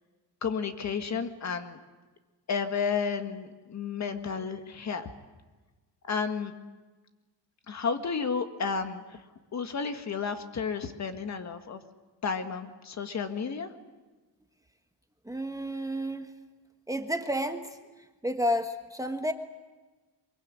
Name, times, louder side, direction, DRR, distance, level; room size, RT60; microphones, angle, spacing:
voice 1, 0.4-1.8 2.5-5.1 6.0-6.5 7.7-9.2 9.5-11.8 12.2-13.7, left 5 dB, 40° left, 8 dB, 1.8 m, -32 dB
voice 2, 15.2-16.3 16.9-17.8 18.2-19.3, equal, 10° right, 5 dB, 1.3 m, -30 dB
23.5 x 22.5 x 9.7 m, 1.3 s
cardioid pair, 140°, 43 cm